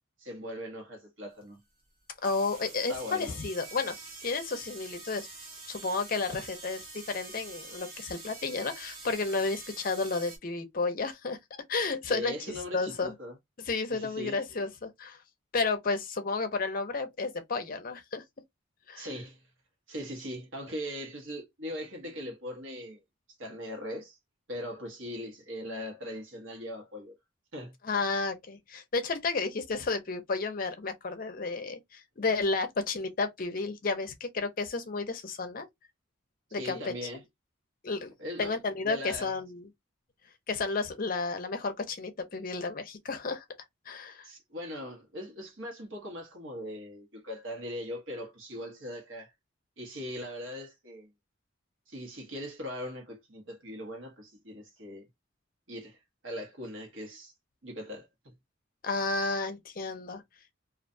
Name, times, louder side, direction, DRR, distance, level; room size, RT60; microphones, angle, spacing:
voice 1, 0.2-1.6 2.9-3.4 12.0-13.4 13.9-14.4 19.0-19.4 19.9-23.0 23.4-24.2 24.5-27.2 27.5-27.7 36.5-37.2 38.2-39.3 44.2-49.3 49.8-51.1 51.9-55.1 55.7-56.0 56.2-57.3 57.6-58.3, equal, 75° right, 1.1 m, -40 dB
sound 1, 1.4-1.5 2.2-10.4, right 3 dB, 50° right, 1.0 m, -46 dB
voice 2, 2.2-4.0 4.2-5.3 5.7-11.4 11.7-12.3 12.7-13.1 13.6-15.2 15.5-18.2 18.9-19.1 27.8-35.7 36.5-36.9 37.8-38.1 38.4-39.7 40.5-43.4 43.9-44.3 58.8-60.2, left 3 dB, 45° left, 0.5 m, -32 dB
2.4 x 2.2 x 2.6 m
head